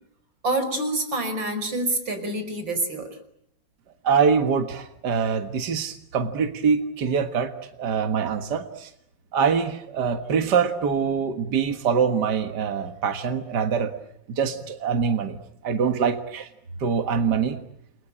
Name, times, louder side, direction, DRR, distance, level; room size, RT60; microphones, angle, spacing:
voice 1, 0.4-3.1, right 2 dB, 90° right, 8 dB, 6.1 m, -27 dB
voice 2, 4.0-8.9 9.3-13.9 14.3-15.4 15.6-16.5 16.8-17.6, right 6 dB, 65° right, 7 dB, 2.1 m, -24 dB
29.5 x 23.0 x 8.8 m, 0.75 s
omnidirectional pair, 2.0 m